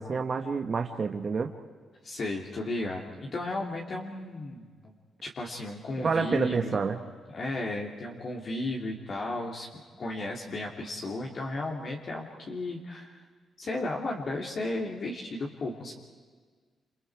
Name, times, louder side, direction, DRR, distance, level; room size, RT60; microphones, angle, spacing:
voice 1, 0.0-1.5 6.0-7.0, right 5 dB, 40° right, 4 dB, 1.3 m, -28 dB
voice 2, 2.0-4.9 5.2-6.7 7.3-9.7 10.0-13.2 13.6-15.9, left 2 dB, 45° left, -2 dB, 2.7 m, -34 dB
29.0 x 28.5 x 4.7 m, 1.5 s
cardioid pair, 125°, 0 cm